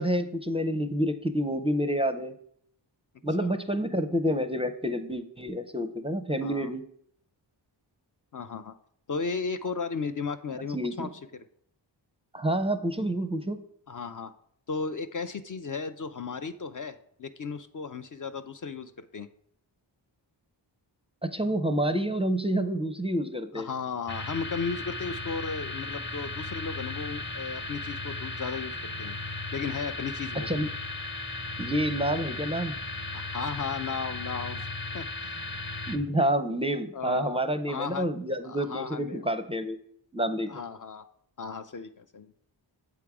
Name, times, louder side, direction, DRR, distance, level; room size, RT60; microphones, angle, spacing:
voice 1, 0.0-2.3 3.2-6.8 10.7-11.1 12.3-13.6 21.2-23.7 30.5-30.7 31.6-32.8 35.9-39.8 40.1-40.6, right 1 dB, 15° right, 9 dB, 0.5 m, -28 dB
voice 2, 6.4-6.7 8.3-8.7 9.1-11.4 13.9-14.3 14.7-19.3 23.5-29.2 29.5-30.5 33.1-34.7 34.9-35.4 36.9-38.1 38.4-39.2 40.5-41.0 41.4-42.3, left 5 dB, 45° left, 9 dB, 0.4 m, -35 dB
sound 1, 24.1-36.0, left 2 dB, 25° left, 0.9 m, -36 dB
7.7 x 3.6 x 4.7 m, 0.67 s
cardioid pair, 45°, 47 cm